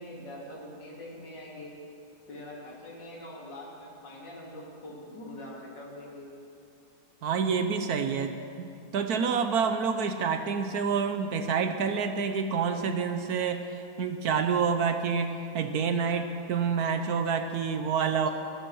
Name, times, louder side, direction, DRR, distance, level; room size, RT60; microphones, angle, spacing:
voice 1, 0.0-1.7 2.3-6.3 16.1-16.3 18.2-18.3, left 1 dB, 65° left, -4 dB, 3.4 m, -44 dB
voice 2, 7.2-18.3, right 6 dB, 65° right, 7 dB, 1.1 m, -28 dB
13.0 x 12.5 x 6.3 m, 2.5 s
omnidirectional pair, 2.1 m